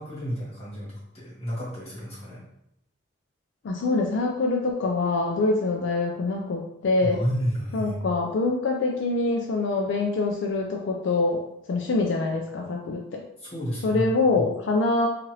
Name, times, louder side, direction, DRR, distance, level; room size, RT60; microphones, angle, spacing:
voice 1, 0.0-2.4 7.0-8.1 13.4-14.5, equal, 30° left, -7 dB, 1.2 m, -31 dB
voice 2, 3.6-7.2 7.7-11.4 11.7-13.2 13.8-15.1, left 3 dB, 70° left, 1 dB, 0.3 m, -25 dB
2.8 x 2.4 x 3.1 m, 0.81 s
head